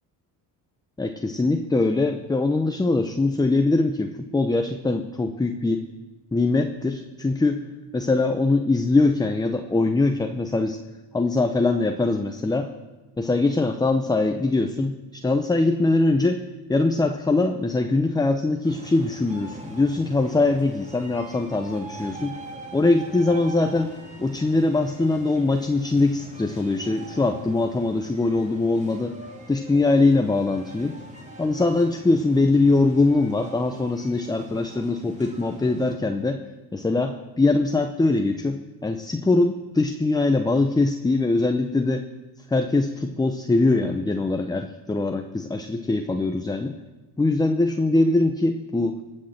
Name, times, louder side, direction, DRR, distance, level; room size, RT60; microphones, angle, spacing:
voice 1, 1.0-5.9 6.3-7.6 7.9-10.8 11.1-12.7 13.2-16.4 16.7-22.4 22.7-23.9 24.2-29.1 29.5-31.0 31.4-36.4 36.7-42.1 42.5-46.7 47.2-49.0, left 2 dB, 10° left, 6 dB, 0.7 m, -22 dB
sound 1, 18.6-36.0, right 1 dB, 15° right, 2.7 m, -43 dB
18.5 x 6.5 x 7.4 m, 1.1 s
cardioid pair, 95°, 43 cm